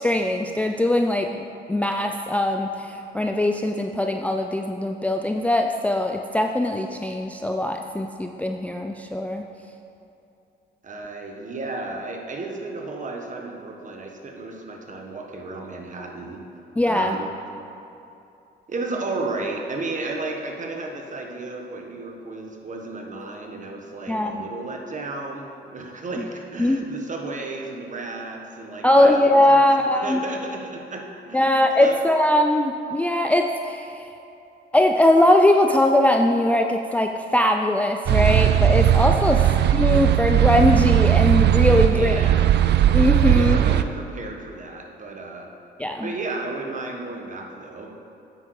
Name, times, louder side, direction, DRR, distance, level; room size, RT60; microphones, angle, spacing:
voice 1, 0.0-1.4 1.7-9.4 16.8-17.2 24.1-24.4 26.6-26.8 28.8-30.2 31.3-34.1 34.7-39.5 39.7-42.3 42.9-43.6 45.8-46.1, left 1 dB, 5° left, 4 dB, 0.4 m, -21 dB
voice 2, 10.8-16.4 16.9-17.3 18.7-31.9 39.2-39.5 41.9-42.4 43.2-45.5 46.0-47.9, right 3 dB, 40° right, 2 dB, 1.3 m, -33 dB
sound 1, 38.1-43.8, right 12 dB, 60° right, 0.4 m, -18 dB
8.8 x 8.2 x 4.8 m, 2.7 s
cardioid pair, 90°, 20 cm